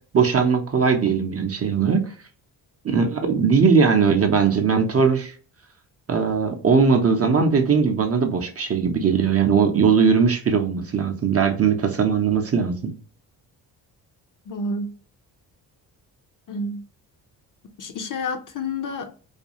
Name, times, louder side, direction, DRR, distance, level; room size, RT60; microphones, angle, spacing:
voice 1, 0.1-2.1 2.8-5.3 6.1-12.9, right 5 dB, 30° right, 0.5 m, -19 dB
voice 2, 14.5-14.9 16.5-16.8 17.8-19.1, left 2 dB, 45° left, 0.6 m, -29 dB
2.5 x 2.3 x 2.8 m
supercardioid pair, 50°, 46 cm